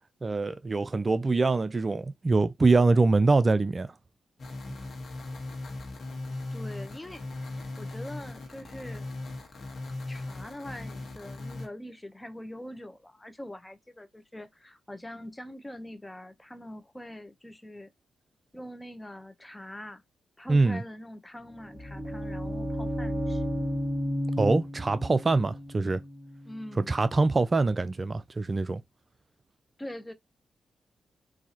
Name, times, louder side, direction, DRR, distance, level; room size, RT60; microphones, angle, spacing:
voice 1, 0.2-3.9 20.5-20.8 24.4-26.0 26.9-28.8, right 3 dB, 35° right, 0.4 m, -24 dB
sound 1, 4.4-11.7, left 2 dB, 60° left, 1.4 m, -38 dB
voice 2, 6.5-9.1 10.1-17.9 18.5-20.0 20.4-23.5 26.4-27.0 29.8-30.1, left 1 dB, 15° left, 0.8 m, -43 dB
sound 2, 21.4-27.3, equal, 10° right, 1.9 m, -33 dB
3.9 x 2.7 x 2.9 m
hypercardioid pair, 45°, 0 cm